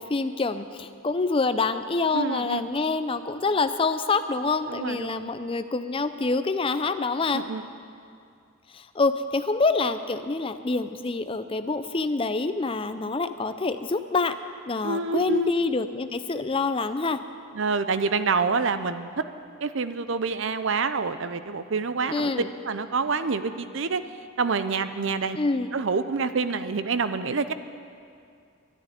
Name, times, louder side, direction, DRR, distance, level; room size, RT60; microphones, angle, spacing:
voice 1, 0.0-7.4 8.7-14.3 14.7-17.2 22.1-22.5 25.4-25.7, left 3 dB, 25° left, 10 dB, 0.5 m, -26 dB
voice 2, 2.1-2.7 4.7-5.3 7.3-7.6 14.8-15.5 17.5-19.2 19.6-22.3 22.6-24.0 24.4-25.4 25.7-27.5, right 4 dB, 60° right, 11 dB, 0.6 m, -27 dB
11.5 x 10.0 x 9.8 m, 2.4 s
head